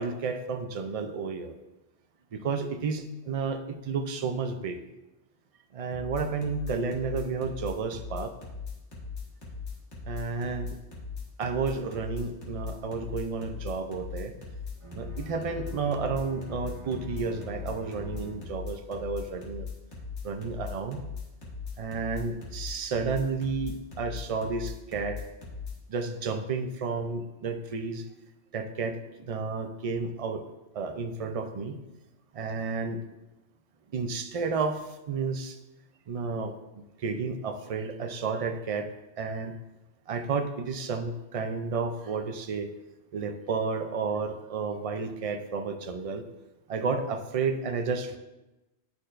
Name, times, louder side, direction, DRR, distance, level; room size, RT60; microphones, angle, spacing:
voice 1, 0.0-1.5 2.3-4.8 5.7-8.4 10.1-10.8 11.4-14.3 14.9-19.7 20.2-21.0 21.8-25.2 25.9-28.1 28.5-30.4 30.7-31.8 32.3-33.0 33.9-35.6 36.1-39.5 40.1-42.7 43.1-46.2 46.7-48.2, right 4 dB, 60° right, 6 dB, 0.3 m, -31 dB
sound 1, 5.9-25.7, left 5 dB, 70° left, 1.7 m, -39 dB
Bowed string instrument, 14.7-18.8, left 3 dB, 30° right, 1.0 m, -46 dB
11.0 x 4.4 x 2.5 m, 1.0 s
omnidirectional pair, 1.2 m